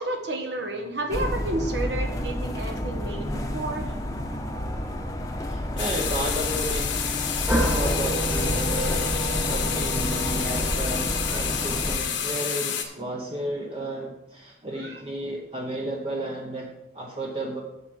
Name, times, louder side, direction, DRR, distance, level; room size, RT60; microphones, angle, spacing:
voice 1, 0.0-4.0 11.3-11.4, right 1 dB, 65° right, 4 dB, 1.3 m, -31 dB
sound 1, 1.1-12.0, equal, 20° left, 0.9 m, -30 dB
voice 2, 5.5-7.2 7.7-9.2 9.5-17.6, right 1 dB, 30° right, 0 dB, 0.8 m, -33 dB
sound 2, 5.8-12.8, left 8 dB, 85° left, 1.3 m, -29 dB
sound 3, 7.5-12.2, right 1 dB, 10° right, 1.4 m, -30 dB
8.0 x 7.1 x 5.4 m, 0.93 s
head